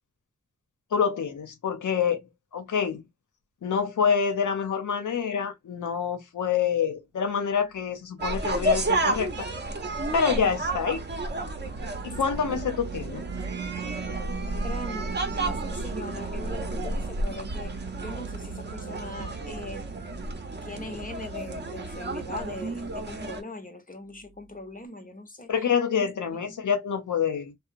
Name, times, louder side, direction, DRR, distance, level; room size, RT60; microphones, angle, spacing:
voice 1, 0.9-2.2 2.5-3.0 3.6-9.5 10.1-11.0 12.0-13.3 25.5-27.5, left 7 dB, 85° left, 0.7 m, -27 dB
sound 1, 8.2-23.4, right 2 dB, 35° right, 0.7 m, -32 dB
sound 2, 9.4-23.0, right 5 dB, 75° right, 0.6 m, -40 dB
voice 2, 14.6-15.0 15.3-19.9 20.6-25.5 26.5-26.6, left 2 dB, 30° left, 0.7 m, -40 dB
2.9 x 2.0 x 2.5 m
wide cardioid pair, 70°, 30 cm